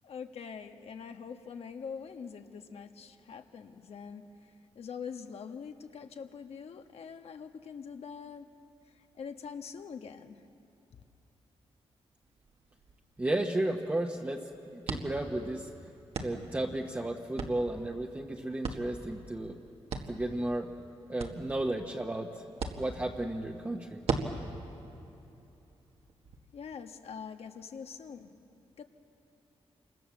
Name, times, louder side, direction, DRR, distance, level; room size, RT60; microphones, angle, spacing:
voice 1, 0.0-8.5 8.9-10.4 26.5-28.3 28.8-28.9, left 6 dB, 75° left, 6 dB, 1.4 m, -44 dB
sound 1, 12.2-26.4, right 4 dB, 70° right, 1.8 m, -41 dB
voice 2, 13.2-15.7 16.2-19.6 20.1-20.7 21.1-22.4 22.8-24.0, right 1 dB, 15° right, 0 dB, 1.2 m, -33 dB
28.5 x 25.0 x 7.2 m, 2.9 s
wide cardioid pair, 125°, 11 cm